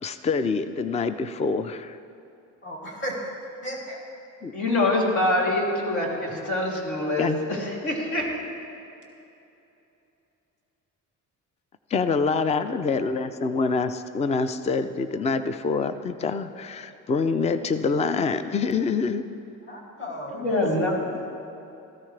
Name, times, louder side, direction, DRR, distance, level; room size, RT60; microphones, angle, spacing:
voice 1, 0.0-2.0 4.4-4.5 7.2-7.4 11.9-13.9 14.1-19.2, left 4 dB, 20° left, 11 dB, 0.4 m, -26 dB
voice 2, 2.6-3.3 3.6-4.0 19.7-21.3, equal, 35° left, -3 dB, 2.5 m, -36 dB
voice 3, 4.5-8.3 20.3-20.9, left 1 dB, 65° left, -3 dB, 3.1 m, -25 dB
16.5 x 14.0 x 3.3 m, 2.9 s
cardioid pair, 140°, 32 cm